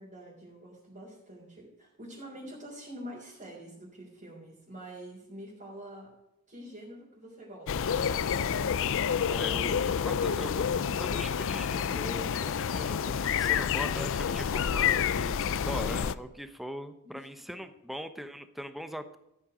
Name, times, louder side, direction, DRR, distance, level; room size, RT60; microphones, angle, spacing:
voice 1, 0.0-6.1 6.5-7.9 17.0-17.7, equal, 35° right, -6 dB, 3.6 m, -46 dB
sound 1, 7.7-16.1, left 7 dB, 60° left, 0.4 m, -29 dB
voice 2, 9.3-19.2, equal, ahead, 9 dB, 0.8 m, -41 dB
14.0 x 8.8 x 5.0 m, 0.87 s
head